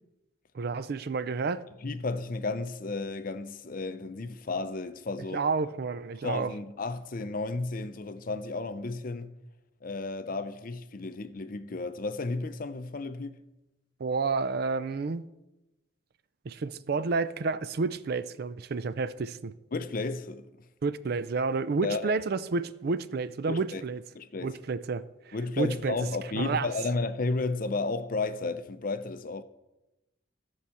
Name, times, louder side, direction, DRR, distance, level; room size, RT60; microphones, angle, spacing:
voice 1, 0.5-1.6 5.3-6.5 14.0-15.3 16.4-19.5 20.8-24.0 24.4-26.0 26.4-26.7, right 4 dB, 50° right, 0.4 m, -30 dB
voice 2, 1.8-5.4 6.2-9.4 9.8-13.4 19.7-20.5 21.8-22.1 23.5-23.8 24.1-24.5 25.3-29.4, left 3 dB, 45° left, 0.5 m, -33 dB
13.0 x 4.7 x 7.0 m
head